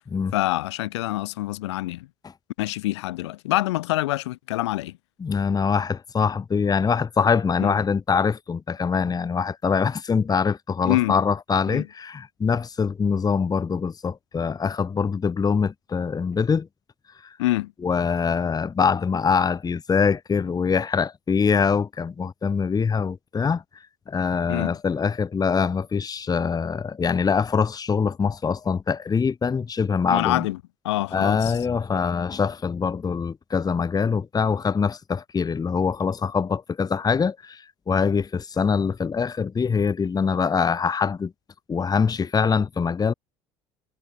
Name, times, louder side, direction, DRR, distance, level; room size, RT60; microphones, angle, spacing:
voice 1, 0.3-2.1 2.6-4.9 7.6-7.7 10.8-11.2 11.7-11.8 17.4-17.7 24.5-24.7 30.1-30.6 30.8-31.5, left 17 dB, 80° left, 2.8 m, -26 dB
voice 2, 5.2-16.7 17.2-17.4 17.8-23.6 24.1-30.4 31.1-41.3 41.7-43.1, left 6 dB, 25° left, 1.6 m, -24 dB
hypercardioid pair, 70°, 14 cm